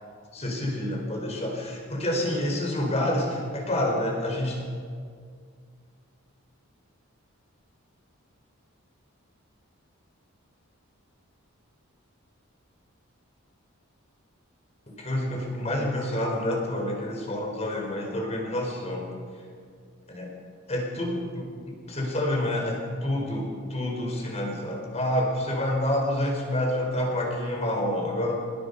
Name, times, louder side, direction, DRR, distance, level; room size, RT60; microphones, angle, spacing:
voice 1, 0.3-4.6 14.9-19.1 20.2-20.3 20.7-28.4, left 1 dB, 30° left, 0 dB, 4.9 m, -28 dB
26.5 x 20.0 x 5.6 m, 2.1 s
head